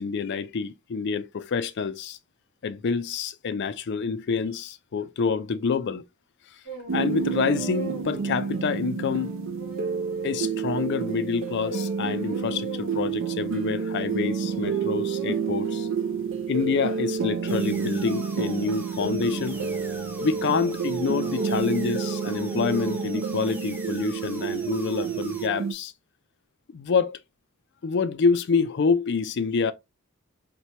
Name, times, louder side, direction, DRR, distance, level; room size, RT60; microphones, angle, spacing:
voice 1, 0.0-2.2 2.6-6.0 6.9-9.3 10.2-15.9 16.5-19.6 20.2-25.9 26.7-27.2 27.8-29.7, left 5 dB, 50° left, 0.4 m, -27 dB
sound 1, 6.6-11.1 11.4-18.0 18.9-23.4, right 3 dB, 30° right, 2.5 m, -41 dB
sound 2, 6.9-25.7, right 6 dB, 60° right, 0.5 m, -29 dB
sound 3, 17.5-25.5, right 2 dB, 10° right, 0.5 m, -44 dB
4.3 x 2.2 x 2.8 m
head